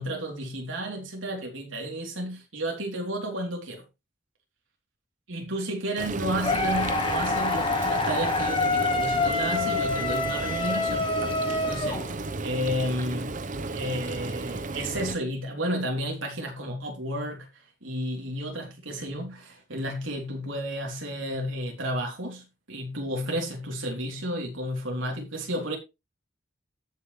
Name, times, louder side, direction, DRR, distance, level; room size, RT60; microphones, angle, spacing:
voice 1, 0.0-3.8 5.3-11.1 11.7-12.0 12.4-13.4 13.7-25.8, equal, 80° right, 3.2 m, -32 dB
Frying (food), 6.0-15.2, right 3 dB, 40° right, 0.8 m, -34 dB
sound 1, 6.4-12.5, left 3 dB, 25° left, 1.9 m, -27 dB
14.0 x 6.9 x 3.2 m
head